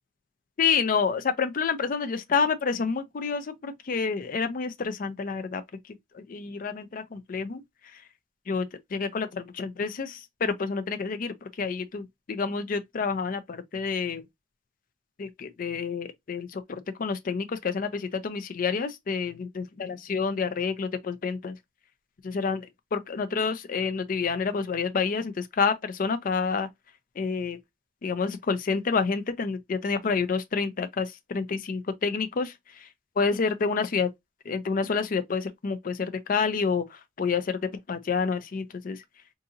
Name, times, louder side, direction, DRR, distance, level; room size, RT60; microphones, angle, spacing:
voice 1, 0.6-8.0 8.5-14.2 15.2-21.6 22.2-26.7 27.2-27.6 28.0-32.9 33.2-34.1 34.4-39.0, left 5 dB, 50° left, 0.4 m, -29 dB
3.7 x 2.6 x 2.6 m
head